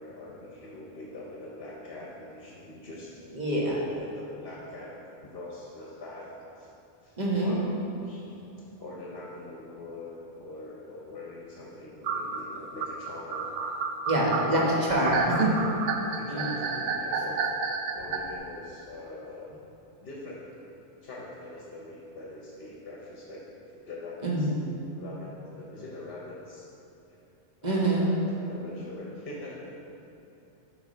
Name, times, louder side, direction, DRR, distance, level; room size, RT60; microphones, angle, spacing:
voice 1, 0.0-3.2 3.7-6.7 7.0-13.8 14.4-15.4 16.1-17.5 17.9-19.5 20.0-20.5 21.0-24.5 25.0-26.7 27.1-27.3 27.6-28.1 28.4-29.9, left 2 dB, 60° left, -3 dB, 0.9 m, -43 dB
voice 2, 3.3-3.7 7.2-7.6 14.1-15.5 16.3-16.7 24.2-24.6 27.6-28.1, right 1 dB, 40° right, -4 dB, 1.2 m, -25 dB
sound 1, 12.0-18.2, right 5 dB, 75° right, 0.9 m, -30 dB
7.9 x 3.3 x 4.9 m, 2.9 s
omnidirectional pair, 1.2 m